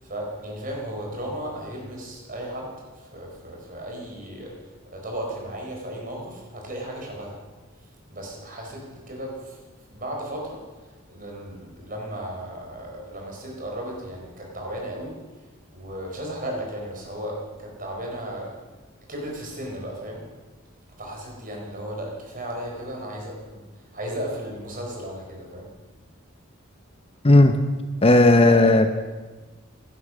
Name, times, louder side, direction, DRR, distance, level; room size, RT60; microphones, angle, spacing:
voice 1, 0.0-4.5 4.9-7.4 8.1-9.6 9.9-15.2 15.7-18.5 19.1-20.2 21.0-25.7, right 1 dB, 40° right, 0 dB, 4.3 m, -35 dB
voice 2, 28.0-28.9, left 2 dB, 30° left, 8 dB, 0.8 m, -14 dB
16.0 x 11.5 x 6.4 m, 1.3 s
head